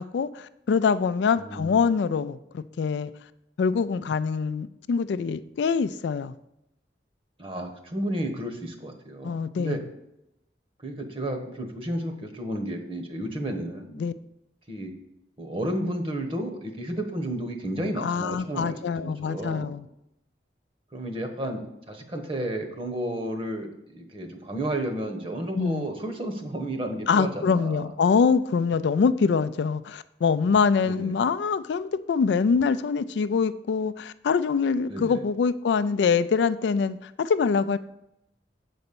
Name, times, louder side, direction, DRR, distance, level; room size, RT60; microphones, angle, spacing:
voice 1, 0.0-3.1 3.6-6.3 9.2-9.8 14.0-14.1 18.0-19.9 25.5-25.9 27.1-37.8, left 5 dB, 80° left, 13 dB, 0.3 m, -24 dB
voice 2, 1.4-1.8 7.4-9.8 10.8-14.0 14.7-14.9 15.4-19.7 20.9-27.9 30.8-31.1 34.9-35.2, right 1 dB, 30° right, 4 dB, 1.1 m, -32 dB
7.9 x 4.1 x 6.8 m, 0.85 s
head